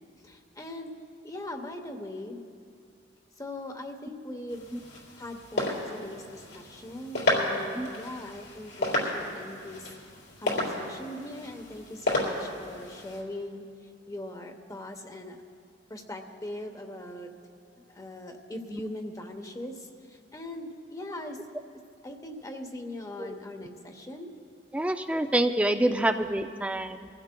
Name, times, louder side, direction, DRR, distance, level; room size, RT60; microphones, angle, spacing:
voice 1, 0.2-0.9 1.2-2.4 3.4-4.7 5.2-9.9 10.4-13.7 14.1-15.4 15.9-17.3 17.8-21.4 22.0-24.3, left 1 dB, 20° left, 5 dB, 0.9 m, -40 dB
sound 1, 4.5-13.2, left 1 dB, 80° left, 3.5 m, -32 dB
voice 2, 24.7-27.1, right 1 dB, 5° right, 8 dB, 0.4 m, -27 dB
25.0 x 15.5 x 2.2 m, 2.4 s
head